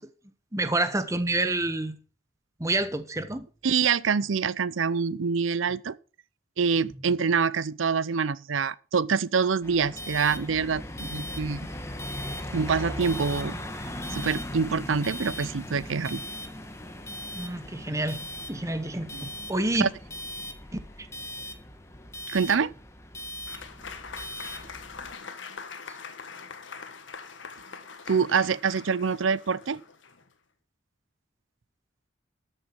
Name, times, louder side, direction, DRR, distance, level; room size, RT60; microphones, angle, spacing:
voice 1, 0.5-2.0 2.6-3.5 17.4-18.2 18.5-19.9, right 2 dB, 15° right, 1.0 m, -28 dB
voice 2, 3.6-6.0 6.6-11.7 12.5-13.6 14.1-16.2 19.1-19.3 19.8-19.9 22.3-22.7 28.1-29.8, right 5 dB, 75° right, 0.6 m, -26 dB
sound 1, 9.6-25.1, left 1 dB, 15° left, 1.4 m, -38 dB
Applause / Crowd, 23.5-30.3, left 5 dB, 65° left, 1.5 m, -43 dB
13.5 x 6.7 x 6.0 m
head